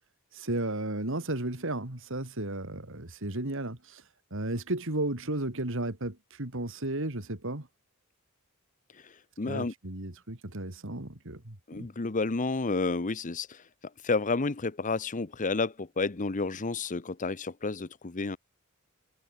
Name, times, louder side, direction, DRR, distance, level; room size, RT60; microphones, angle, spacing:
voice 1, 0.3-4.0 4.3-7.7 9.5-11.9, right 1 dB, 65° right, 3.2 m, -34 dB
voice 2, 9.4-9.7 11.7-13.6 14.0-18.4, left 3 dB, 35° left, 0.9 m, -30 dB
head